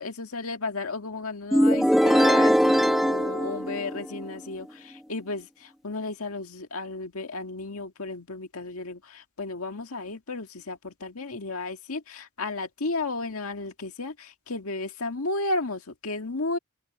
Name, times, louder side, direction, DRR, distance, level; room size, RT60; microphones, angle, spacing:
voice 1, 0.0-16.6, left 3 dB, 85° left, 1.9 m, -33 dB
sound 1, 1.5-4.3, equal, ahead, 1.1 m, -21 dB
open air
head